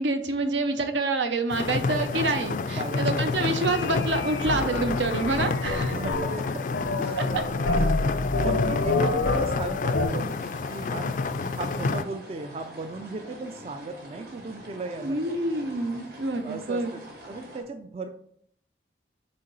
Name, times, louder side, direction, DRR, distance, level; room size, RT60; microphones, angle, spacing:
voice 1, 0.0-5.9 7.2-7.4 15.0-16.9, right 2 dB, 85° right, 7 dB, 0.7 m, -27 dB
sound 1, 1.5-12.0, left 4 dB, 45° left, 0.3 m, -29 dB
voice 2, 2.6-3.4 5.7-7.2 7.6-11.1 11.4-15.4 16.4-18.2, right 3 dB, 35° right, 7 dB, 0.3 m, -37 dB
sound 2, 3.7-10.1, left 3 dB, 90° left, 0.7 m, -28 dB
sound 3, 10.0-17.6, right 1 dB, 55° right, 1.8 m, -45 dB
6.6 x 3.7 x 4.0 m, 0.65 s
head